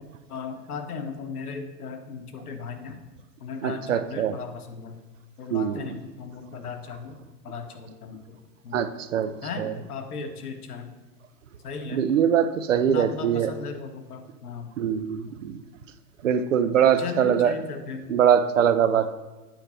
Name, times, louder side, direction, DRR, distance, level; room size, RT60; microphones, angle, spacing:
voice 1, 0.3-3.0 3.4-5.0 5.4-8.4 8.6-8.8 9.4-10.9 11.6-12.1 12.9-14.7 17.0-18.1, left 5 dB, 65° left, 6 dB, 1.2 m, -36 dB
voice 2, 3.6-4.4 5.5-5.9 8.7-9.3 9.6-9.7 11.9-13.5 14.8-15.6 16.2-17.5 18.1-19.1, right 8 dB, 55° right, 12 dB, 0.5 m, -22 dB
8.8 x 5.1 x 4.3 m, 1.2 s
hypercardioid pair, 175°, 48 cm